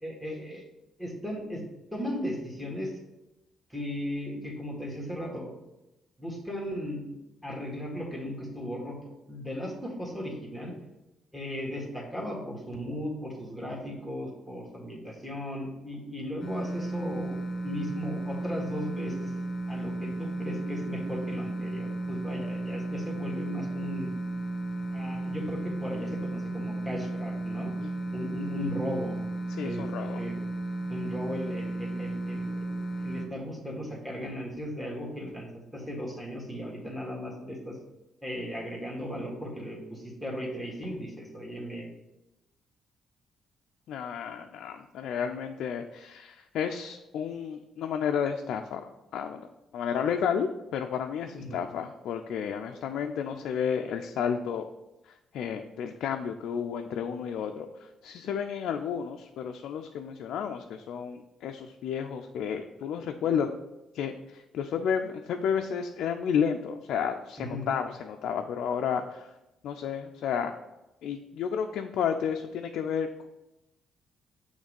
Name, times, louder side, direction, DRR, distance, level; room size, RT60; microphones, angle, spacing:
voice 1, 0.0-0.6 1.0-1.6 1.9-2.9 3.7-5.5 6.2-7.0 7.4-10.7 11.3-17.4 17.6-19.3 19.7-24.1 24.9-27.8 28.1-29.2 29.6-29.9 30.2-30.4 30.9-37.8 38.2-41.9 51.4-51.6 67.4-67.7, equal, 5° right, -3 dB, 1.8 m, -36 dB
sound 1, 16.4-33.3, right 2 dB, 30° left, 1.1 m, -34 dB
voice 2, 27.8-28.2 29.5-30.2 43.9-49.5 49.7-54.7 55.3-63.5 63.9-69.3 69.6-70.5 71.0-73.3, left 7 dB, 80° left, 4 dB, 0.3 m, -32 dB
6.3 x 3.2 x 5.2 m, 0.95 s
cardioid pair, 90°, 0 cm